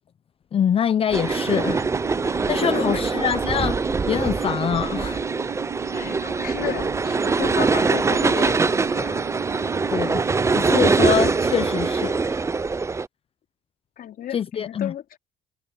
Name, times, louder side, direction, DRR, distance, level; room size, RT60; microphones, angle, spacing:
voice 1, 0.5-1.9 2.2-5.2 9.9-10.2 10.5-12.5 14.3-14.9, left 8 dB, 35° left, 0.6 m, -25 dB
sound 1, 1.1-13.1, right 4 dB, 15° right, 0.5 m, -23 dB
sound 2, 1.2-11.9, right 11 dB, 60° right, 3.9 m, -36 dB
voice 2, 2.7-3.1 5.9-9.2 14.0-15.2, left 11 dB, 60° left, 4.3 m, -33 dB
cardioid pair, 110°, 17 cm